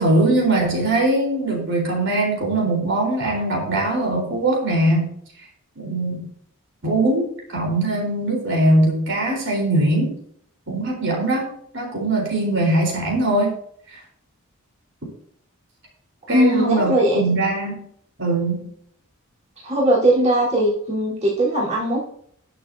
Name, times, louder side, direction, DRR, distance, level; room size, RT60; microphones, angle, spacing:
voice 1, 0.0-5.1 5.8-6.3 6.8-10.1 10.7-11.5 11.7-13.5 13.9-14.0 16.3-17.8 18.2-18.7, right 2 dB, 60° right, -1 dB, 4.1 m, -21 dB
voice 2, 16.3-17.2 19.6-22.0, right 1 dB, 30° right, -7 dB, 3.9 m, -19 dB
20.5 x 7.0 x 2.8 m, 0.65 s
head